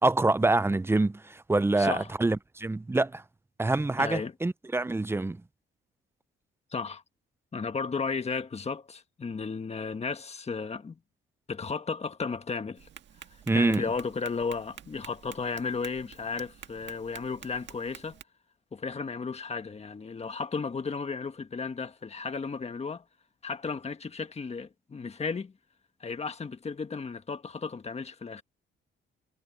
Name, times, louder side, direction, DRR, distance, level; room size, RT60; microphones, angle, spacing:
voice 1, 0.0-3.2 3.6-5.4 13.5-13.8, right 2 dB, 10° right, 0.6 m, -26 dB
voice 2, 1.7-2.1 4.0-4.3 6.7-7.0 7.5-11.0 11.5-12.9 13.5-18.2 18.7-23.0 23.4-25.5 26.0-28.4, left 5 dB, 30° left, 1.5 m, -34 dB
Tap, 12.7-18.2, right 9 dB, 60° right, 1.7 m, -50 dB
cardioid pair, 100°, 21 cm